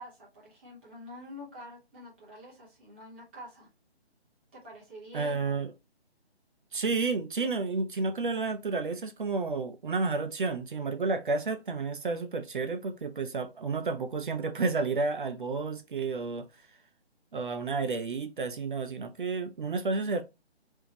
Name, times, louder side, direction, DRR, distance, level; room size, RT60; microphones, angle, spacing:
voice 1, 0.0-3.7 4.5-5.6, equal, 10° right, 0.7 m, -47 dB
voice 2, 5.1-5.7 6.7-16.5 17.3-20.2, right 4 dB, 50° right, 0.5 m, -31 dB
3.4 x 2.6 x 2.9 m
figure-of-eight pair, 155°, 32 cm